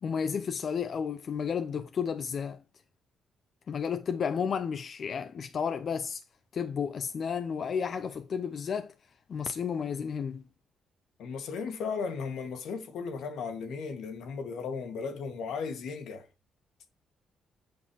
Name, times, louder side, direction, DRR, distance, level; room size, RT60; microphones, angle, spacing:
voice 1, 0.0-2.6 3.7-6.2 6.5-8.9 9.3-10.4, left 6 dB, 50° left, 0.7 m, -32 dB
voice 2, 11.2-16.3, left 5 dB, 80° left, 2.1 m, -36 dB
8.7 x 5.5 x 4.8 m
cardioid pair, 90°, 0 cm